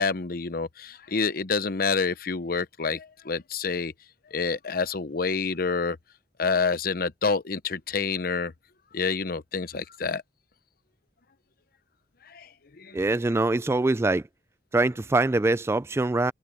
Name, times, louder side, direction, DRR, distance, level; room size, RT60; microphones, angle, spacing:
voice 1, 0.0-3.9 4.3-6.0 6.4-8.5 8.9-10.2 12.3-12.5 12.8-13.0, left 4 dB, 55° left, 0.8 m, -28 dB
voice 2, 12.9-14.3 14.7-16.3, right 2 dB, 15° right, 0.3 m, -23 dB
head